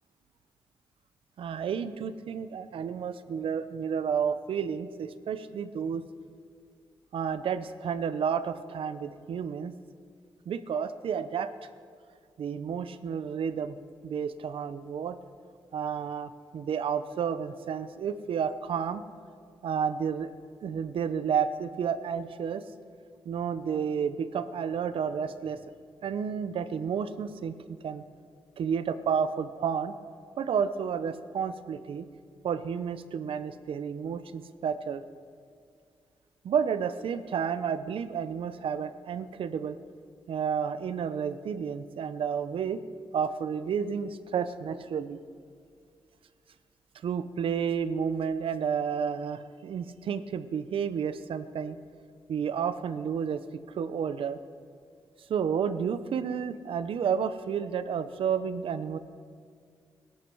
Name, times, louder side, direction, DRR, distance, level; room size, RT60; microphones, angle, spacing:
voice 1, 1.4-6.0 7.1-9.7 10.5-11.5 12.4-13.8 14.0-15.2 15.7-19.0 19.6-20.3 20.6-22.6 23.3-25.6 26.0-27.6 27.8-28.0 28.6-29.9 30.4-32.1 32.4-35.0 36.4-39.8 40.3-42.8 43.1-45.2 47.0-51.8 52.3-53.4 53.8-54.4 55.3-59.0, right 7 dB, 80° right, 13 dB, 0.7 m, -31 dB
19.5 x 11.5 x 4.6 m, 2.2 s
cardioid pair, 60°, 9 cm